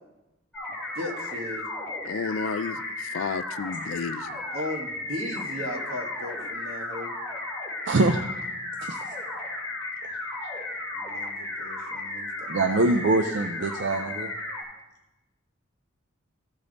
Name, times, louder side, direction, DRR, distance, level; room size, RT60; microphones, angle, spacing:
sound 1, 0.5-14.6, left 2 dB, 5° left, 2.3 m, -34 dB
voice 1, 0.9-1.7 4.5-7.2 10.9-12.8, left 1 dB, 75° right, 1.4 m, -36 dB
voice 2, 2.1-4.4, left 5 dB, 70° left, 0.4 m, -32 dB
voice 3, 7.9-8.2 8.8-9.0 12.5-14.3, right 2 dB, 60° right, 0.5 m, -23 dB
15.0 x 5.1 x 4.0 m
head